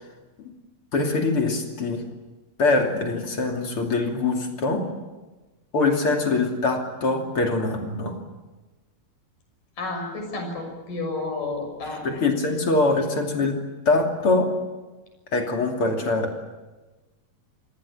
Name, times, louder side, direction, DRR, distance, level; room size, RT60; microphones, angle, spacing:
voice 1, 0.9-2.0 2.6-4.9 5.7-8.2 11.9-14.5 15.3-16.3, left 3 dB, 40° left, 2 dB, 3.4 m, -23 dB
voice 2, 9.8-12.0, left 3 dB, 60° left, 3 dB, 8.0 m, -31 dB
28.0 x 19.5 x 8.6 m, 1.2 s
omnidirectional pair, 4.3 m